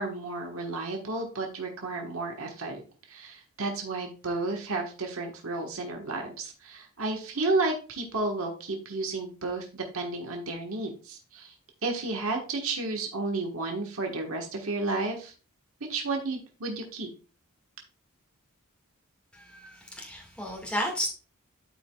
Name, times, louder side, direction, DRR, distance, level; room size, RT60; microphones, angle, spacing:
voice 1, 0.0-2.8 3.1-11.5 11.8-15.3 15.9-17.1, right 3 dB, 75° right, 1 dB, 1.4 m, -32 dB
voice 2, 19.4-21.1, equal, 5° left, 0 dB, 1.8 m, -33 dB
12.0 x 4.8 x 2.3 m, 0.36 s
head